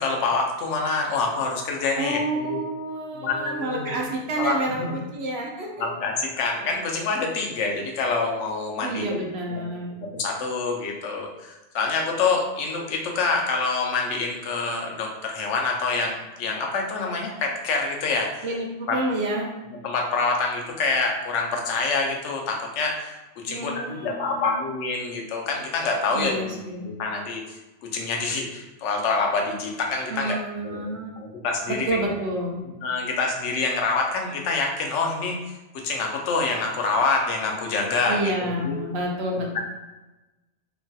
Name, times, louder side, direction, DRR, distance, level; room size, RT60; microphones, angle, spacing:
voice 1, 0.0-2.6 3.1-4.0 4.4-4.9 5.8-9.2 9.5-9.7 10.0-18.5 18.9-19.0 19.8-27.4 27.8-32.0 32.8-35.4 35.8-38.8, left 4 dB, 80° left, 1 dB, 0.9 m, -26 dB
voice 2, 2.0-4.8 5.1-5.7 8.8-10.0 18.4-19.5 23.5-24.7 26.1-26.9 30.1-31.2 31.7-32.6 38.1-39.6, right 1 dB, 65° right, -1 dB, 0.8 m, -29 dB
3.1 x 2.2 x 2.6 m, 1.1 s
omnidirectional pair, 1.2 m